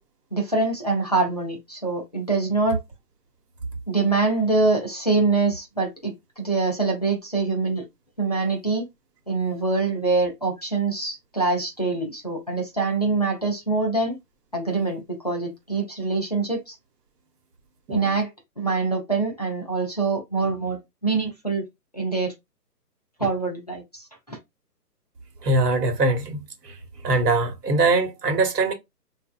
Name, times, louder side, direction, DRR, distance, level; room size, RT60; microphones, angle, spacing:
voice 1, 0.3-2.8 3.9-7.8 8.2-8.9 9.3-14.2 14.5-16.7 17.9-18.3 18.6-21.6 21.9-22.3 23.2-24.4, right 3 dB, 25° left, 0.5 m, -24 dB
voice 2, 17.9-18.2 25.4-26.8 27.0-28.7, right 2 dB, 75° right, 1.1 m, -22 dB
2.9 x 2.5 x 2.3 m
hypercardioid pair, 165°, 48 cm